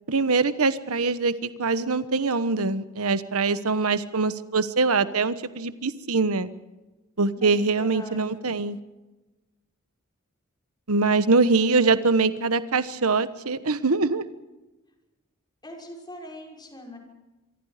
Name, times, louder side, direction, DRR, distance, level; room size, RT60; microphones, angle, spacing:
voice 1, 0.1-6.5 7.2-8.8 10.9-14.2, right 4 dB, 70° right, 13 dB, 1.2 m, -23 dB
voice 2, 7.3-8.5 11.6-12.0 15.6-17.0, left 1 dB, 20° left, 2 dB, 5.9 m, -42 dB
26.0 x 24.0 x 5.1 m, 1.1 s
head